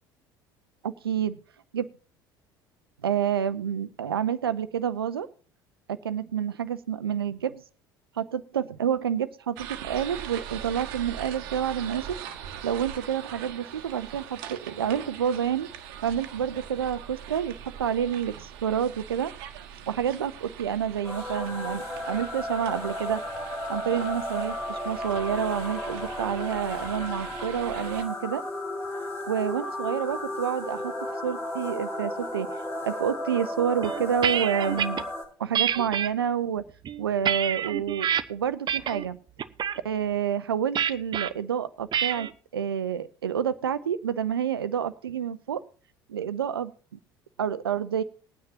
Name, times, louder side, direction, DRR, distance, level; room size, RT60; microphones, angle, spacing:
voice 1, 0.8-1.3 1.7-1.9 3.0-5.3 5.9-7.6 8.2-12.1 12.6-15.7 16.0-17.5 17.8-19.3 19.9-23.2 23.7-28.4 29.3-30.9 31.2-32.6 32.8-35.0 35.4-36.6 37.0-39.2 39.8-45.6 46.1-46.7 47.4-48.0, right 8 dB, 80° right, 14 dB, 0.8 m, -28 dB
sound 1, 9.5-28.0, right 9 dB, 65° right, 1.4 m, -42 dB
sound 2, 21.0-35.2, left 1 dB, 20° left, 5.8 m, -34 dB
sound 3, 33.8-35.0 35.5-36.1 36.7-38.2 38.7-39.1 39.4-39.8 40.8-41.3 41.9-42.3, right 9 dB, 35° right, 0.8 m, -27 dB
20.5 x 9.6 x 2.8 m, 0.42 s
figure-of-eight pair, 65°, 12 cm